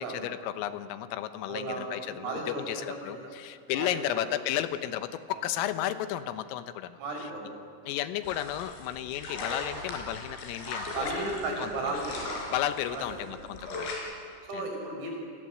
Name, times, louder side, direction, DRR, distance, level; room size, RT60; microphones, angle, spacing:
voice 1, 0.0-7.3 7.9-10.9 11.2-12.0 12.5-13.9 14.5-14.7, left 12 dB, 85° left, 10 dB, 3.7 m, -33 dB
voice 2, 1.5-3.3 3.7-4.4 5.3-5.4 7.0-7.6 10.9-12.5 12.9-13.3 14.5-15.1, right 2 dB, 85° right, 1 dB, 8.0 m, -35 dB
sound 1, 8.2-13.9, left 2 dB, 65° left, 7.0 m, -38 dB
30.0 x 21.0 x 7.8 m, 2.2 s
omnidirectional pair, 5.9 m